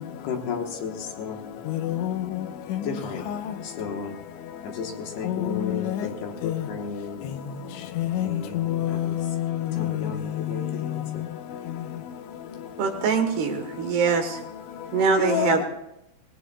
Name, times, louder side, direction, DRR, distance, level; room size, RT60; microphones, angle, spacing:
voice 1, 0.2-1.6 2.8-3.3 3.6-4.2 4.6-7.3 8.2-9.2 9.7-11.2, left 5 dB, 65° left, 3.0 m, -34 dB
voice 2, 1.7-2.2 2.7-2.8 3.3-3.4 5.2-6.1 6.4-6.6 8.0-10.0 15.2-15.6, left 12 dB, 85° left, 3.3 m, -27 dB
voice 3, 12.8-14.4 14.9-15.6, right 5 dB, 70° right, 3.1 m, -23 dB
25.5 x 19.5 x 2.3 m
omnidirectional pair, 5.4 m